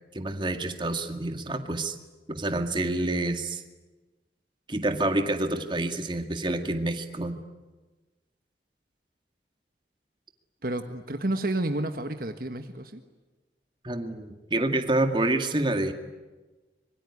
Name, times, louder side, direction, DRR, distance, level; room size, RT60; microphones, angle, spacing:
voice 1, 0.1-2.0 2.3-3.6 4.7-7.4 13.8-15.9, right 2 dB, 25° right, 7 dB, 2.1 m, -28 dB
voice 2, 10.6-13.0, right 1 dB, 55° right, 7 dB, 1.5 m, -30 dB
25.5 x 23.0 x 9.8 m, 1.2 s
head